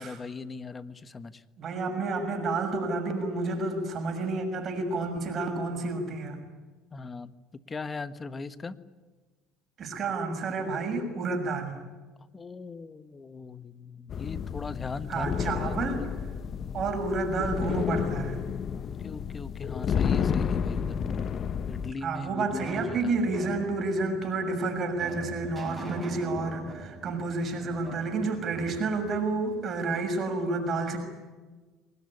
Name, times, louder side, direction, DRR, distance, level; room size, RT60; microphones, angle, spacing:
voice 1, 0.0-1.4 6.9-7.3 7.7-8.7 12.3-16.1 18.7-21.0 21.7-23.0, left 4 dB, 25° left, 13 dB, 1.4 m, -39 dB
voice 2, 1.6-6.4 9.8-11.8 15.1-16.1 16.7-18.4 22.0-31.0, right 3 dB, 45° right, 4 dB, 6.5 m, -30 dB
sound 1, 14.1-21.9, left 7 dB, 45° left, 1.0 m, -31 dB
sound 2, 21.8-29.9, right 2 dB, 15° right, 7.4 m, -43 dB
24.5 x 20.0 x 10.0 m, 1.3 s
supercardioid pair, 100°, 0 cm